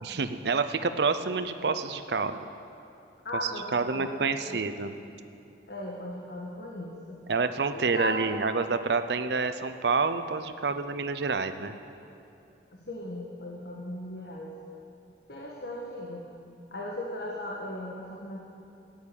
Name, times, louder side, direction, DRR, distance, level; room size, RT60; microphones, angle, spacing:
voice 1, 0.0-2.4 3.4-4.9 7.3-11.7, right 4 dB, 65° right, 10 dB, 0.6 m, -28 dB
voice 2, 3.2-4.6 5.7-7.2 7.7-8.3 12.7-14.5 15.3-16.3 16.7-18.4, left 1 dB, 60° left, -2 dB, 1.5 m, -37 dB
13.5 x 9.4 x 8.5 m, 2.7 s
head